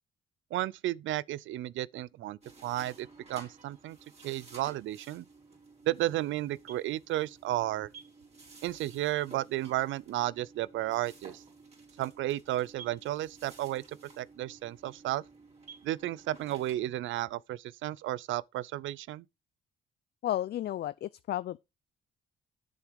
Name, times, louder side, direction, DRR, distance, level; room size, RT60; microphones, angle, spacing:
voice 1, 0.5-4.0 4.2-5.3 5.9-7.9 8.6-11.4 12.0-15.2 15.8-19.2, right 15 dB, 80° right, 0.5 m, -33 dB
sound 1, 2.4-16.7, right 4 dB, 35° right, 4.7 m, -53 dB
voice 2, 20.2-21.6, left 12 dB, 55° left, 0.4 m, -33 dB
7.5 x 7.3 x 5.2 m
cardioid pair, 90°, 20 cm